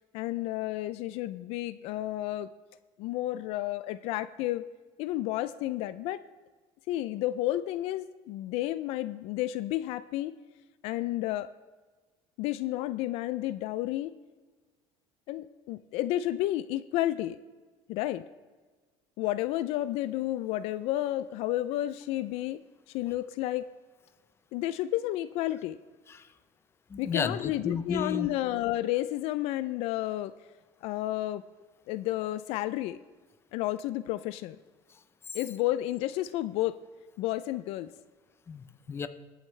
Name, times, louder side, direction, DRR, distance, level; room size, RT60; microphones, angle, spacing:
voice 1, 0.1-2.5 3.0-4.7 5.0-6.2 6.9-10.3 10.8-11.5 12.4-14.1 15.3-17.4 17.9-18.3 19.2-22.6 22.9-23.7 24.5-25.8 27.0-30.3 30.8-31.4 31.9-33.0 33.5-34.6 35.3-36.8 37.2-37.9, left 15 dB, 75° left, 14 dB, 0.4 m, -31 dB
voice 2, 26.9-28.3 34.9-35.4 38.5-39.1, left 5 dB, 25° left, 10 dB, 0.7 m, -34 dB
23.0 x 8.0 x 3.3 m, 1.3 s
cardioid pair, 140°, 11 cm